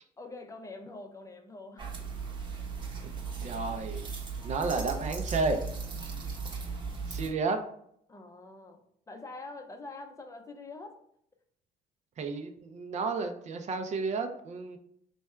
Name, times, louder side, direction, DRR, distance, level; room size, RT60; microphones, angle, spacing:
voice 1, 0.2-1.9 8.1-11.0, left 3 dB, 20° left, 4 dB, 0.6 m, -45 dB
sound 1, 1.8-7.3, right 5 dB, 25° right, 0.9 m, -37 dB
voice 2, 3.4-4.1 4.4-5.6 7.1-7.6 12.2-14.8, right 4 dB, 45° right, 6 dB, 0.5 m, -32 dB
3.4 x 2.3 x 4.3 m, 0.69 s
cardioid pair, 110°, 17 cm